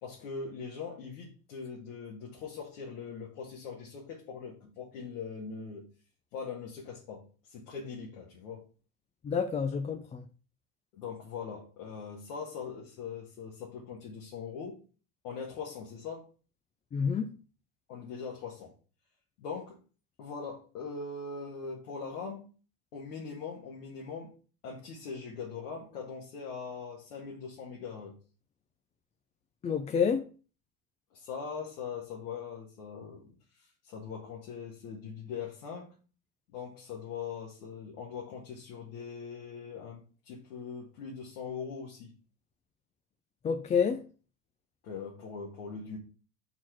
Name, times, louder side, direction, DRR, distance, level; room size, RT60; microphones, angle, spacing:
voice 1, 0.0-5.9 6.3-8.6 10.9-14.8 15.2-16.3 17.9-18.7 19.4-19.8 20.2-22.5 22.9-24.3 24.6-28.1 31.1-36.0 36.5-42.1 44.8-46.0, left 5 dB, 75° left, 1.8 m, -41 dB
voice 2, 9.2-10.3 16.9-17.3 29.6-30.3 43.4-44.0, left 6 dB, 15° left, 0.3 m, -28 dB
4.6 x 4.4 x 5.8 m
hypercardioid pair, 80°, 47 cm